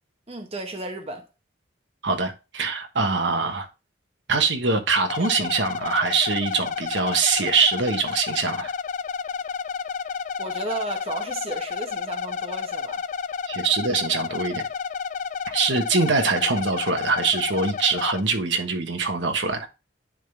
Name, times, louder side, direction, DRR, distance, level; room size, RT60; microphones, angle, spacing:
voice 1, 0.3-1.3 10.4-13.0, right 2 dB, 30° right, 1.0 m, -34 dB
voice 2, 2.0-3.7 4.3-8.7 13.5-14.6 15.5-19.7, right 4 dB, 70° right, 1.3 m, -23 dB
sound 1, 5.1-18.2, left 6 dB, 40° left, 0.3 m, -31 dB
10.0 x 3.8 x 3.5 m
head